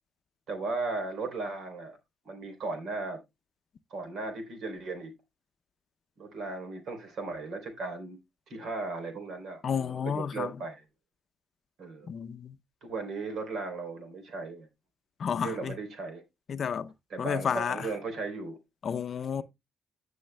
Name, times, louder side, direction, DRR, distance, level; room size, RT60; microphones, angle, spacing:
voice 1, 0.5-2.0 2.2-3.2 3.9-5.1 6.2-8.2 8.5-9.6 10.0-10.8 11.8-12.1 12.8-14.7 15.3-16.2 17.1-18.6, right 3 dB, 70° right, 3.5 m, -36 dB
voice 2, 9.6-10.6 12.1-12.6 15.2-15.8 16.5-17.9 18.8-19.4, left 7 dB, 55° left, 0.5 m, -31 dB
15.5 x 6.3 x 2.2 m
cardioid pair, 90°, 0 cm